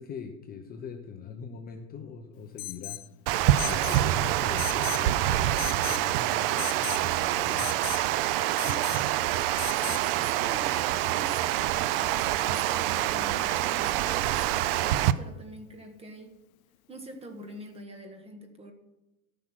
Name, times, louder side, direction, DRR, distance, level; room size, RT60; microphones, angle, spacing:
voice 1, 0.0-3.0 3.6-7.7, left 7 dB, 20° left, 4 dB, 0.8 m, -42 dB
Alarm, 2.6-3.1 3.6-4.0 4.6-5.1 5.6-6.1 6.6-7.1 7.6-8.0 8.6-9.0 9.6-10.0, left 16 dB, 75° left, 0.7 m, -36 dB
Water, 3.3-15.1, right 14 dB, 45° right, 0.5 m, -26 dB
voice 2, 8.6-9.3 9.8-16.3 16.9-18.7, right 1 dB, 15° right, 5 dB, 1.4 m, -45 dB
14.0 x 6.2 x 6.0 m, 1.0 s
supercardioid pair, 140°, 42 cm